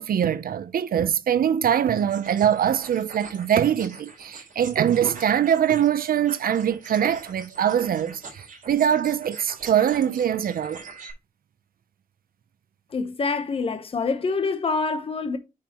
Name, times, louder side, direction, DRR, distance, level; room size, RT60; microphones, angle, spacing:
voice 1, 0.0-10.8, right 9 dB, 90° right, 0.7 m, -23 dB
sound 1, 2.0-11.1, right 4 dB, 65° right, 4.0 m, -44 dB
voice 2, 12.9-15.4, left 4 dB, 40° left, 1.0 m, -26 dB
9.0 x 5.5 x 3.0 m
wide cardioid pair, 165°, 15 cm